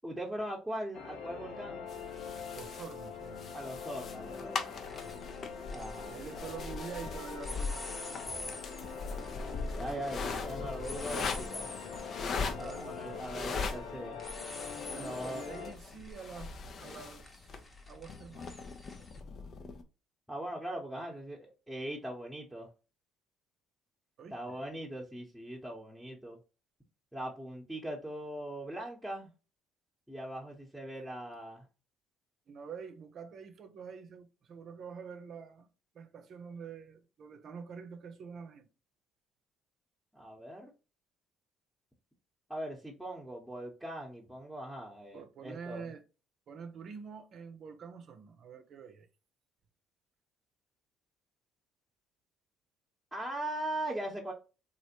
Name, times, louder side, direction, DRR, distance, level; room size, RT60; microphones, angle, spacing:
voice 1, 0.0-1.9 3.5-4.9 5.7-6.5 9.7-11.7 12.6-14.2 15.0-15.4 20.3-22.7 24.3-26.4 27.1-29.3 30.1-31.7 40.1-40.7 42.5-45.9 53.1-54.3, right 1 dB, ahead, 0.9 m, -40 dB
sound 1, 0.9-15.7, left 6 dB, 75° left, 0.8 m, -43 dB
sound 2, 1.9-19.8, left 4 dB, 50° left, 0.5 m, -41 dB
sound 3, 2.2-2.3 4.0-4.3 4.6-7.0 7.4-19.2, left 2 dB, 25° left, 0.9 m, -49 dB
voice 2, 2.5-3.5 4.9-5.2 6.1-8.6 9.8-11.0 12.5-13.2 14.9-16.5 16.8-18.6 20.9-21.2 24.2-24.6 32.5-35.7 35.9-38.7 45.1-46.0 46.5-49.1, right 6 dB, 55° right, 0.6 m, -47 dB
3.2 x 2.5 x 2.9 m
hypercardioid pair, 60°, 0 cm